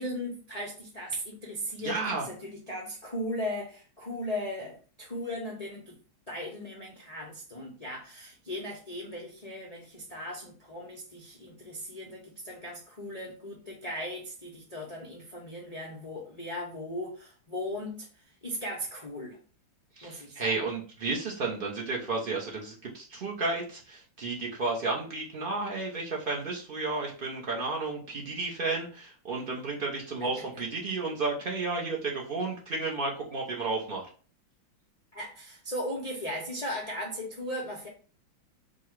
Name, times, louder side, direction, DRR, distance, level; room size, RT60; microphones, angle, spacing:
voice 1, 0.0-6.0 6.3-18.1 18.4-19.4 20.0-20.6 30.2-30.4 35.1-37.9, left 1 dB, 75° left, -3 dB, 0.3 m, -37 dB
voice 2, 1.8-2.3 20.0-34.1, right 3 dB, 80° right, -2 dB, 0.4 m, -32 dB
4.3 x 2.2 x 4.5 m, 0.40 s
omnidirectional pair, 2.2 m